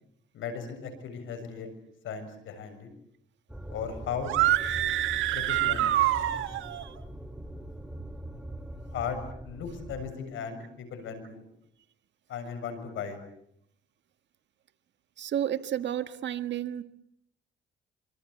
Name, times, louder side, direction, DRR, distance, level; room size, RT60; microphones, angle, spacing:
voice 1, 0.3-1.7 2.0-2.9 3.7-4.3 5.3-5.9 8.9-9.2 9.4-11.4 12.3-13.2, left 6 dB, 80° left, 8 dB, 7.0 m, -36 dB
sound 1, 3.5-10.1, right 1 dB, 5° right, 2.5 m, -42 dB
sound 2, 4.2-6.8, right 13 dB, 85° right, 1.8 m, -26 dB
voice 2, 6.3-7.0 15.2-16.8, right 10 dB, 65° right, 11 dB, 1.7 m, -33 dB
26.0 x 25.5 x 8.4 m, 0.73 s
cardioid pair, 90°, 20 cm